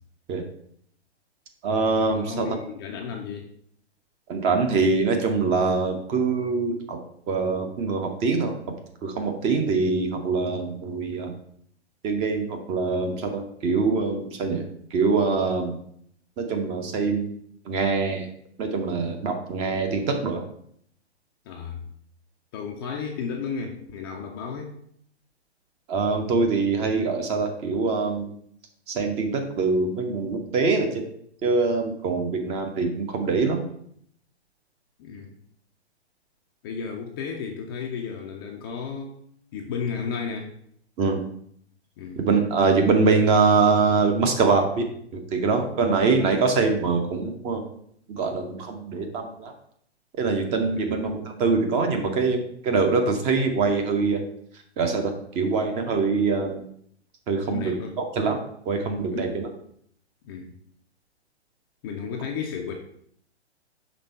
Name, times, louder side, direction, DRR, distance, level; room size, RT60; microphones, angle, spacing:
voice 1, 1.6-2.5 4.3-7.0 7.3-8.5 9.0-11.3 12.0-14.6 14.9-15.7 16.4-17.4 17.7-18.3 18.6-20.4 25.9-28.3 28.9-31.0 31.4-33.6 41.0-41.2 42.2-44.8 45.1-47.6 48.1-49.5 50.2-54.2 54.8-56.6 57.3-57.7 58.2-58.4 58.7-59.5, right 4 dB, 20° right, 4 dB, 0.7 m, -24 dB
voice 2, 2.1-3.5 21.5-21.8 22.5-24.7 35.0-35.4 36.6-39.2 39.5-40.5 42.0-42.2 45.7-45.8 50.8-50.9 57.4-58.0 59.1-59.4 60.2-60.5 61.8-62.7, left 6 dB, 20° left, 1 dB, 0.5 m, -33 dB
5.3 x 3.6 x 5.4 m, 0.66 s
figure-of-eight pair, 120°, 33 cm